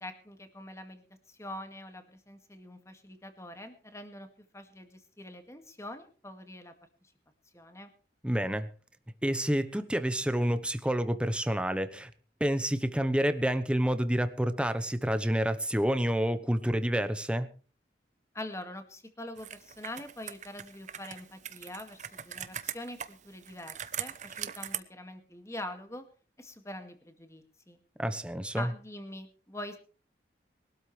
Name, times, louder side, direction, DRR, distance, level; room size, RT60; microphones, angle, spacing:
voice 1, 0.0-6.7 7.0-7.1 7.5-7.9 18.3-26.1 26.4-27.8 28.5-29.8, left 1 dB, 15° left, 7 dB, 2.1 m, -44 dB
voice 2, 8.2-8.7 9.2-12.1 12.4-17.5 28.0-28.7, equal, 5° right, 11 dB, 1.0 m, -28 dB
Computer keyboard, 19.4-24.8, right 10 dB, 40° right, 0.9 m, -41 dB
22.5 x 12.5 x 3.3 m, 0.37 s
head